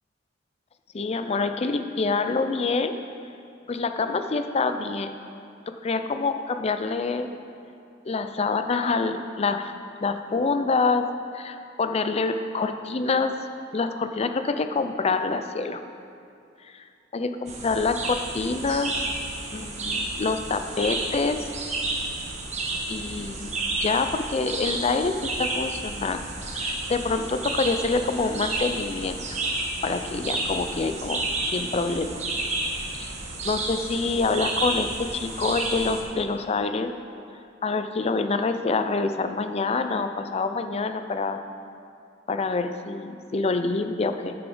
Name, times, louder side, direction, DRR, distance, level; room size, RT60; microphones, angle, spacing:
voice 1, 0.9-3.0 3.7-5.2 5.7-7.3 8.1-9.7 10.0-11.1 11.3-13.3 13.7-15.8 16.6-16.8 17.1-19.0 19.5-21.5 22.9-26.2 26.5-29.4 29.8-32.3 32.9-33.1 33.4-36.9 37.6-41.4 42.3-44.4, left 4 dB, 35° left, 8 dB, 0.4 m, -26 dB
sound 1, 17.5-36.0, right 2 dB, 40° right, 1.2 m, -31 dB
9.5 x 6.8 x 5.4 m, 2.4 s
head